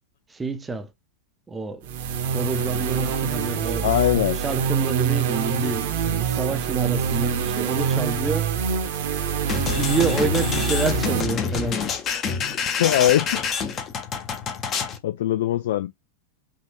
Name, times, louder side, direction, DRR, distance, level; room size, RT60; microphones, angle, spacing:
voice 1, 0.3-0.9 1.5-2.0 2.3-3.9 4.4-8.5 9.7-11.8, right 4 dB, 15° right, 0.7 m, -28 dB
sound 1, 1.8-11.2, right 7 dB, 55° right, 0.9 m, -25 dB
voice 2, 3.8-4.4 12.8-13.3 15.0-15.9, left 12 dB, 55° left, 0.4 m, -20 dB
sound 2, 9.5-15.0, left 6 dB, 30° left, 0.9 m, -27 dB
5.5 x 2.5 x 3.2 m
figure-of-eight pair, 90°, 0 cm